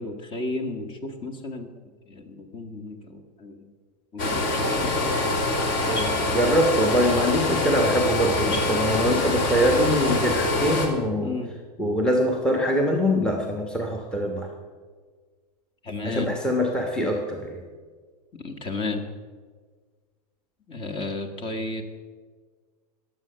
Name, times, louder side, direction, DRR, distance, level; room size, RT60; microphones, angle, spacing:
voice 1, 0.0-1.7 2.1-3.7 4.1-5.2 11.2-11.5 15.8-16.3 18.4-19.1 20.7-21.8, left 2 dB, 25° left, 6 dB, 1.6 m, -33 dB
sound 1, 4.2-10.9, left 2 dB, 40° left, 3.0 m, -25 dB
voice 2, 4.5-5.0 5.8-11.3 11.8-14.5 16.0-17.6, equal, 5° left, 2 dB, 1.2 m, -24 dB
20.0 x 7.7 x 6.8 m, 1.5 s
hypercardioid pair, 135°, 21 cm